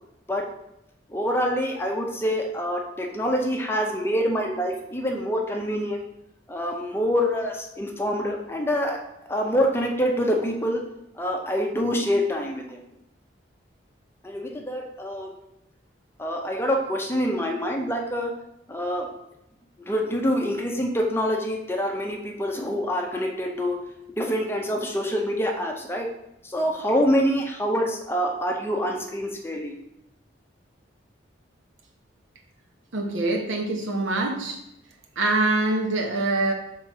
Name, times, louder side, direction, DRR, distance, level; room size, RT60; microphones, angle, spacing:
voice 1, 1.1-6.0 6.5-9.0 9.3-10.8 11.2-12.8 14.2-15.3 16.2-18.3 18.7-19.1 19.8-23.8 24.2-26.1 26.4-29.7, equal, 10° left, 1 dB, 0.6 m, -26 dB
voice 2, 32.9-34.6 35.2-36.5, right 2 dB, 85° right, 2 dB, 1.0 m, -24 dB
5.8 x 3.7 x 4.6 m, 0.86 s
head